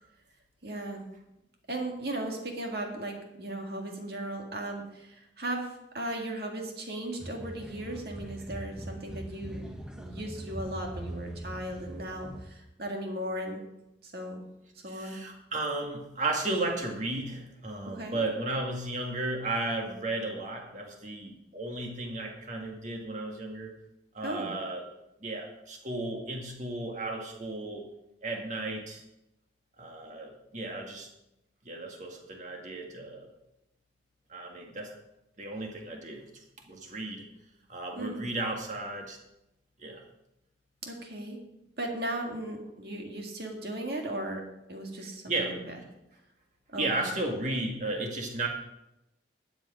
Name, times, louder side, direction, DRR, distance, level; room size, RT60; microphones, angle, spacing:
voice 1, 0.6-1.0 1.7-13.6 14.0-14.4 14.8-15.2 17.9-18.2 24.2-24.5 37.9-38.2 40.8-41.4 41.8-44.4 44.7-45.8 46.7-47.2, right 1 dB, 55° right, 2 dB, 2.0 m, -37 dB
sound 1, 7.2-12.5, right 1 dB, 5° right, 0.9 m, -42 dB
voice 2, 14.9-23.7 24.1-24.8 25.2-27.8 28.2-29.0 29.8-31.1 31.7-33.3 34.3-34.9 35.4-37.2 37.7-39.2 39.8-40.0 45.0-45.5 46.8-48.5, right 2 dB, 40° right, 1 dB, 1.9 m, -34 dB
12.0 x 8.4 x 5.0 m, 0.88 s
head